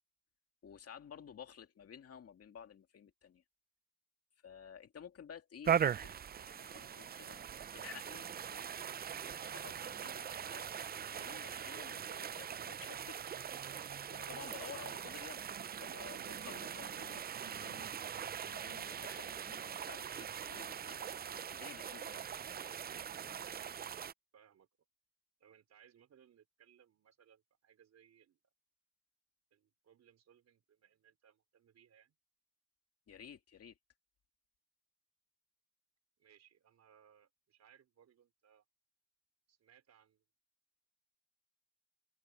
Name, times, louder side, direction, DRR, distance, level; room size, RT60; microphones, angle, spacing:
voice 1, 0.6-3.4 4.4-10.7 11.1-13.2 14.1-15.4 15.7-17.9 18.5-21.0 21.5-22.3 33.1-33.8, left 8 dB, 50° left, 2.5 m, -53 dB
sound 1, 5.6-24.1, right 8 dB, 30° right, 0.5 m, -41 dB
voice 2, 24.3-24.7 25.4-28.4 29.5-32.1 36.2-38.6 39.5-40.2, right 9 dB, 60° right, 5.0 m, -66 dB
cardioid pair, 90°, 30 cm